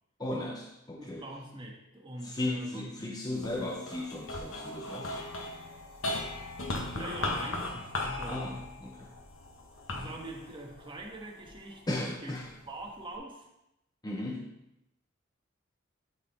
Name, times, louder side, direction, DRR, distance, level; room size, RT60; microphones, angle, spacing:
voice 1, 0.2-1.2 2.2-5.2 8.3-9.1 11.9-12.4 14.0-14.5, left 1 dB, 20° left, -1 dB, 0.8 m, -36 dB
voice 2, 1.0-2.9 6.9-8.4 9.9-12.4 12.6-13.5, right 1 dB, 25° right, 0 dB, 1.4 m, -43 dB
sound 1, 3.4-11.8 12.4-13.2, left 2 dB, 75° left, 1.3 m, -38 dB
12.0 x 4.2 x 4.3 m, 0.87 s
head